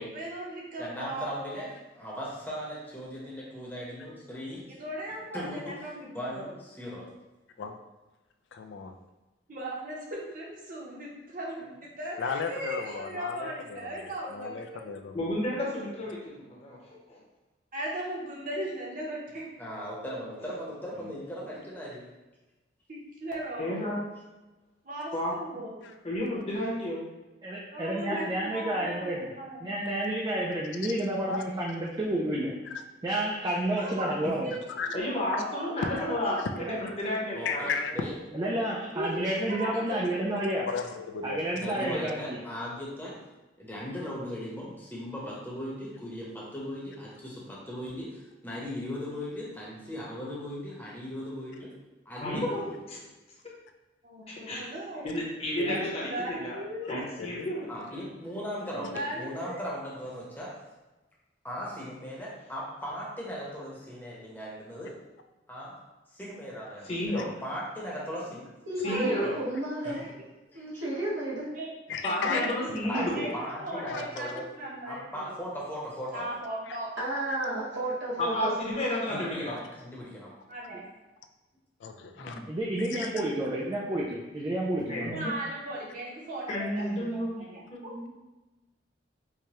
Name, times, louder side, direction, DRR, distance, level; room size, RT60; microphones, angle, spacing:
voice 1, 0.0-1.6 4.7-6.5 9.5-14.9 17.7-19.5 22.9-23.9 24.8-25.9 27.7-30.1 33.7-34.1 34.4-34.5 34.8-35.0 35.3-36.8 38.9-40.4 54.0-55.2 55.6-56.9 58.7-59.7 68.8-69.4 69.8-70.0 71.5-71.7 72.1-75.3 76.1-76.9 80.5-80.8 85.1-87.9, right 1 dB, 50° right, -3 dB, 0.9 m, -38 dB
voice 2, 0.8-1.7 1.9-4.6 5.3-5.6 6.1-6.5 6.8-7.1 19.6-22.0 37.3-38.1 41.5-43.1 43.6-51.7 52.0-52.8 57.7-60.5 61.4-64.9 65.5-65.7 66.1-68.4 69.8-70.0 70.5-70.8 72.8-73.1 73.3-74.5 74.9-76.3 79.1-80.3, equal, 10° left, -5 dB, 0.8 m, -38 dB
voice 3, 8.5-8.9 12.2-13.8 14.3-15.2 25.8-25.9 31.3-31.4 34.8-34.9 35.3-35.4 35.8-36.0 36.4-36.5 37.4-38.1 39.5-39.6 39.9-40.0 40.7-41.4 41.7-41.8 55.6-55.9 57.2-57.5 67.1-67.3 71.9-72.5 73.9-74.3 76.7-76.8 81.8-82.4 82.8-83.1, left 5 dB, 70° left, 6 dB, 0.3 m, -34 dB
voice 4, 15.1-17.2 23.6-24.0 25.1-25.3 26.0-27.0 28.1-28.2 34.9-37.7 52.2-53.0 54.3-54.6 55.0-56.6 56.9-57.7 66.8-67.3 68.8-69.4 72.0-73.3 78.2-79.6 82.2-82.4 84.9-85.2 86.5-88.1, left 1 dB, 35° left, -4 dB, 0.9 m, -32 dB
voice 5, 27.4-29.3 29.6-32.6 33.0-34.5 38.3-40.7 41.2-42.4 79.1-79.2 82.5-85.2, right 1 dB, 20° right, -3 dB, 0.4 m, -30 dB
voice 6, 68.7-70.1 70.5-71.5 77.0-78.5 86.8-87.1, right 1 dB, 90° right, -6 dB, 1.2 m, -32 dB
4.6 x 2.2 x 2.9 m, 1.1 s
head